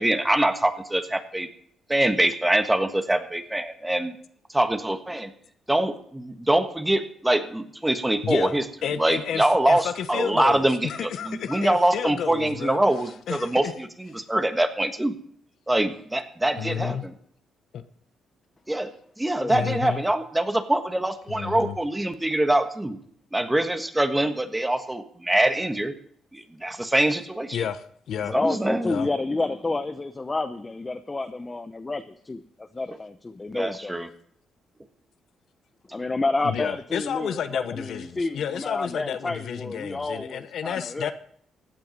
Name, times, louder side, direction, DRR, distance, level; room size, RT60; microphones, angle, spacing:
voice 1, 0.0-1.5 1.9-4.2 4.5-5.3 5.7-8.6 9.0-15.1 15.7-17.1 18.7-18.9 19.2-23.0 23.3-25.9 26.3-27.6 28.3-28.9 33.5-34.1, right 1 dB, 10° right, 8 dB, 1.4 m, -24 dB
voice 2, 8.2-12.8 13.3-13.7 16.6-17.0 17.7-17.8 19.5-20.0 21.3-21.8 27.5-28.3 28.8-29.1 36.4-41.1, left 8 dB, 70° left, 11 dB, 0.9 m, -31 dB
voice 3, 28.2-33.9 35.9-41.1, left 3 dB, 20° left, 9 dB, 0.7 m, -30 dB
16.0 x 9.1 x 5.3 m, 0.64 s
cardioid pair, 90°, 0 cm